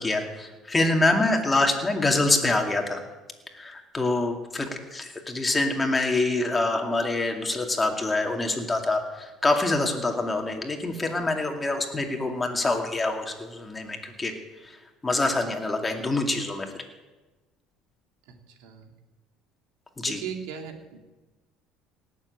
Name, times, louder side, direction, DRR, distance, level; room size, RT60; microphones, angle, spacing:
voice 1, 0.0-3.0 3.5-14.3 14.6-14.8 15.0-16.7 20.0-20.2, left 2 dB, 15° left, 3 dB, 2.4 m, -25 dB
voice 2, 6.4-6.9 8.7-8.8 16.6-16.8 18.3-18.9 20.0-21.0, right 7 dB, 80° right, 4 dB, 2.5 m, -41 dB
18.0 x 7.4 x 8.6 m, 1.2 s
cardioid pair, 115°, 0 cm